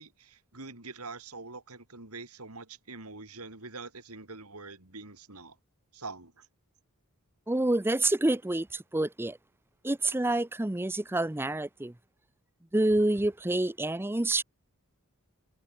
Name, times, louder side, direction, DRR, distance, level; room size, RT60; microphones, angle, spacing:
voice 1, 0.0-5.6 5.9-6.4, right 3 dB, 85° right, 5.3 m, -44 dB
voice 2, 7.5-9.4 9.8-11.9 12.7-14.4, right 2 dB, 10° right, 0.6 m, -27 dB
head